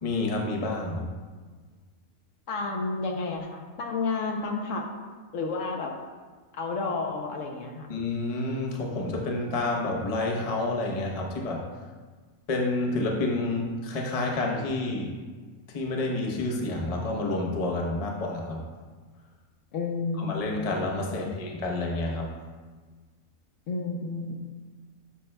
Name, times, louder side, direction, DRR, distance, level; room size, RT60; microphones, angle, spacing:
voice 1, 0.0-1.1 7.9-11.7 12.5-15.1 15.7-18.7 20.2-22.4, left 2 dB, 30° left, 0 dB, 0.8 m, -29 dB
voice 2, 2.5-4.9 5.3-5.9 6.5-7.9 19.7-20.7 21.2-21.3 23.7-24.4, left 3 dB, 65° left, 1 dB, 1.0 m, -31 dB
10.0 x 5.7 x 2.2 m, 1.4 s
omnidirectional pair, 1.5 m